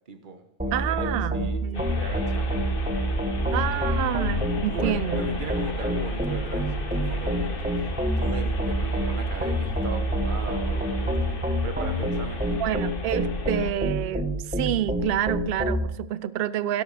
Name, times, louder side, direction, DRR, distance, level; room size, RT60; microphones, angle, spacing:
voice 1, 0.1-2.7 3.4-4.0 4.6-7.5 8.0-12.7, right 5 dB, 40° right, 7 dB, 1.2 m, -39 dB
sound 1, 0.6-15.8, equal, 5° right, 1.1 m, -28 dB
voice 2, 0.7-1.9 3.5-5.5 12.6-16.8, right 11 dB, 60° right, 16 dB, 0.6 m, -28 dB
sound 2, 1.7-13.7, left 1 dB, 45° left, 1.3 m, -33 dB
12.5 x 11.5 x 3.4 m, 0.88 s
omnidirectional pair, 1.4 m